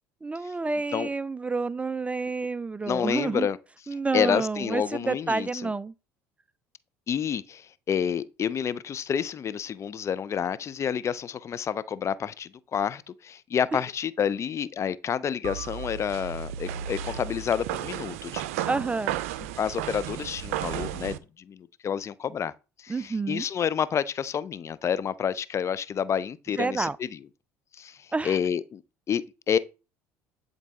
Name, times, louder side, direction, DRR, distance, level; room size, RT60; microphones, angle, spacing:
voice 1, 0.2-3.5 3.9-5.9 13.7-13.8 18.7-19.2 22.9-23.4 26.6-27.0 28.1-28.4, right 3 dB, 15° right, 0.3 m, -29 dB
voice 2, 2.8-3.6 4.1-5.7 7.1-18.7 19.6-22.5 22.8-27.1 27.7-28.8 29.1-29.6, left 8 dB, 40° left, 0.5 m, -29 dB
sound 1, 15.4-21.2, right 11 dB, 80° right, 0.5 m, -34 dB
10.5 x 3.9 x 3.6 m
hypercardioid pair, 70°, 8 cm